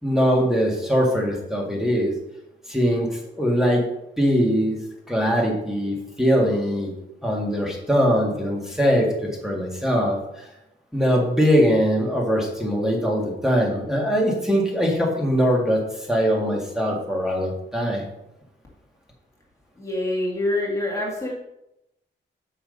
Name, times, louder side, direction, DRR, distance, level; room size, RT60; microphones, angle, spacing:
voice 1, 0.0-2.1 2.7-3.8 4.2-4.8 5.1-6.9 7.2-10.5 10.9-15.8 16.1-18.1, equal, ahead, -1 dB, 2.1 m, -21 dB
voice 2, 19.8-21.3, left 1 dB, 15° left, -4 dB, 1.9 m, -25 dB
7.7 x 5.8 x 5.4 m, 0.88 s
wide cardioid pair, 150°, 19 cm